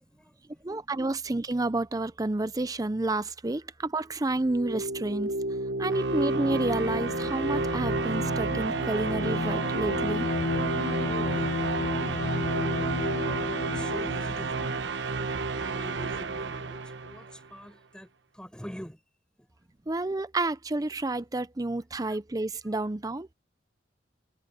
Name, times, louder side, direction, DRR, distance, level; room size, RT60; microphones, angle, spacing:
voice 1, 0.0-0.7 11.0-18.1 18.3-19.0 22.1-22.2, equal, 5° left, 7.3 m, -46 dB
voice 2, 0.6-5.3 5.8-10.3 19.9-23.3, right 2 dB, 20° right, 0.6 m, -30 dB
sound 1, 4.3-17.5, right 3 dB, 80° right, 1.0 m, -31 dB
Bowed string instrument, 6.3-14.8, left 4 dB, 40° left, 0.3 m, -33 dB
head